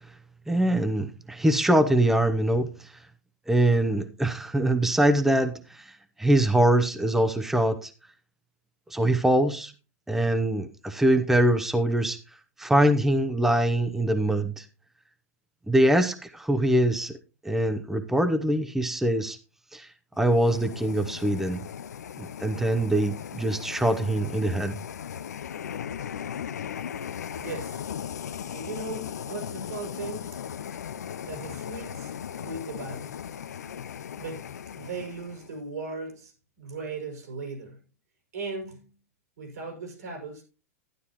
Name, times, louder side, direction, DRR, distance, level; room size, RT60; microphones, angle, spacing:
voice 1, 0.5-2.9 3.5-5.9 6.2-7.9 8.9-9.7 10.1-12.2 12.6-14.6 15.7-17.2 17.4-19.4 19.7-19.9 20.2-21.6 22.2-24.8, right 1 dB, 5° right, 0.8 m, -23 dB
sound 1, 20.2-35.6, left 8 dB, 80° left, 0.6 m, -37 dB
voice 2, 27.4-27.8 28.5-30.4 31.2-33.2 34.1-34.5 34.8-37.8 38.3-38.9 39.4-40.4, right 3 dB, 80° right, 6.1 m, -38 dB
12.0 x 11.0 x 3.0 m
hypercardioid pair, 100°, 9 cm